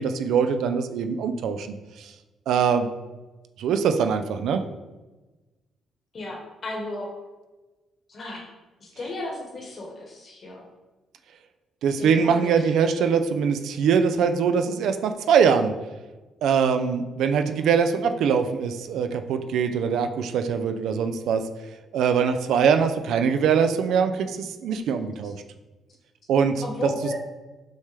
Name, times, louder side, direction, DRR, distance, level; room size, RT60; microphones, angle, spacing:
voice 1, 0.0-1.7 2.0-2.1 2.5-2.9 3.6-4.6 11.8-15.7 16.4-21.4 21.9-25.3 26.3-26.5 26.8-26.9, right 6 dB, 80° right, 8 dB, 0.3 m, -22 dB
voice 2, 6.1-7.1 8.1-8.4 8.8-10.7 12.0-12.6 25.2-25.3 26.6-27.1, left 2 dB, 45° left, 0 dB, 1.3 m, -34 dB
6.2 x 2.2 x 3.3 m, 1.2 s
cardioid pair, 90°, 0 cm